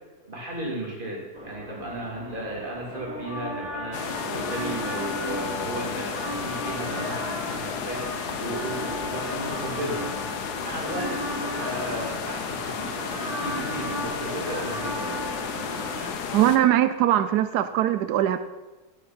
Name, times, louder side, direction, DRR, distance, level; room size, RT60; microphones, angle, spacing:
voice 1, 0.3-10.0 10.6-15.2, right 1 dB, 30° right, -3 dB, 3.4 m, -35 dB
sound 1, 1.3-16.1, equal, 60° right, 3.7 m, -35 dB
sound 2, 3.9-16.6, left 6 dB, 90° left, 1.6 m, -33 dB
voice 2, 16.3-18.4, right 12 dB, 90° right, 11 dB, 1.2 m, -21 dB
11.0 x 10.0 x 6.1 m, 1.2 s
omnidirectional pair, 1.7 m